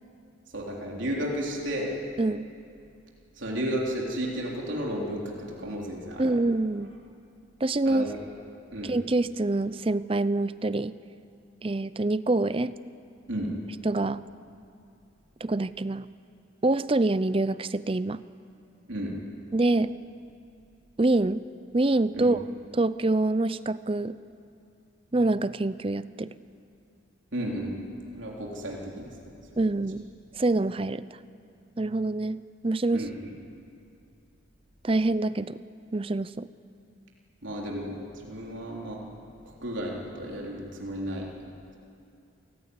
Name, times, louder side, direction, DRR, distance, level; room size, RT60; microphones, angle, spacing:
voice 1, 0.5-2.0 3.4-6.3 7.9-8.1 8.7-8.9 13.3-13.5 18.9-19.1 22.1-22.3 27.3-27.7 28.1-29.1 32.9-33.1 37.4-39.0 39.6-41.3, equal, 70° right, -2 dB, 3.7 m, -33 dB
voice 2, 6.2-6.9 7.6-8.1 8.8-11.0 11.6-12.7 13.8-14.2 15.4-16.0 16.6-18.2 19.5-19.9 21.0-21.4 21.7-22.4 22.7-24.2 25.1-26.3 29.6-30.1 30.3-31.1 31.8-33.1 34.8-35.6 35.9-36.5, right 2 dB, 25° right, 16 dB, 0.5 m, -26 dB
28.0 x 16.5 x 9.7 m, 2.6 s
head